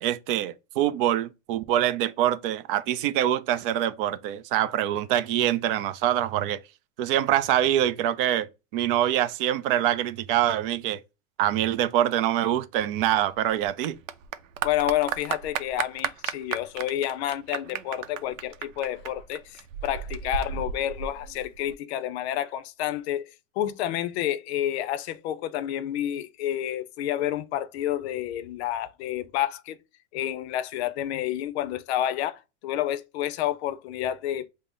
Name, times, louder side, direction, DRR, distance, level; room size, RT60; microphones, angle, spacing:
voice 1, 0.0-6.6 7.0-11.0 11.4-14.0, right 12 dB, 45° right, 0.4 m, -25 dB
Clapping / Applause, 12.7-21.7, right 8 dB, 90° right, 0.6 m, -34 dB
voice 2, 14.6-23.2 23.6-29.8 30.1-34.5, left 12 dB, 55° left, 0.5 m, -29 dB
3.5 x 2.0 x 3.6 m
hypercardioid pair, 125°, 38 cm